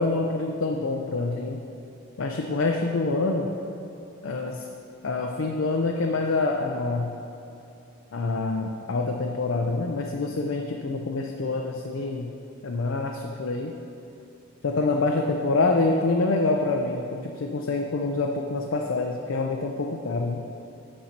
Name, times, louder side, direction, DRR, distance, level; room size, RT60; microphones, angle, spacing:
voice 1, 0.0-1.6 2.2-3.5 4.2-4.7 5.0-7.1 8.1-12.3 12.6-13.7 14.6-20.5, left 3 dB, 80° left, 2 dB, 0.6 m, -26 dB
8.6 x 5.4 x 5.9 m, 2.9 s
head